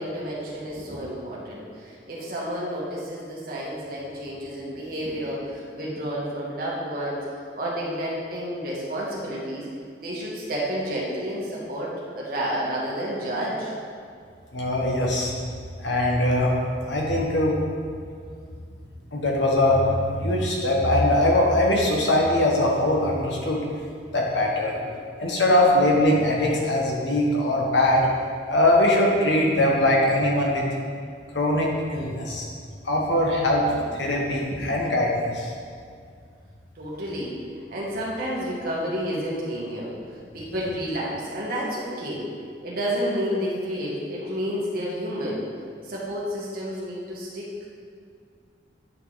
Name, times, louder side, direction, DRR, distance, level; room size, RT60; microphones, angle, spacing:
voice 1, 0.0-9.7 10.0-13.7 34.1-34.6 36.8-37.4 37.7-39.9 40.3-42.3 42.6-45.4 45.8-47.5, equal, 50° right, -5 dB, 1.9 m, -30 dB
voice 2, 14.5-15.3 15.8-16.5 16.8-17.6 19.1-23.6 24.1-24.7 25.2-28.1 28.5-30.6 31.3-32.5 32.8-35.5, left 1 dB, 80° left, -2 dB, 1.6 m, -21 dB
9.7 x 5.6 x 4.1 m, 2.3 s
head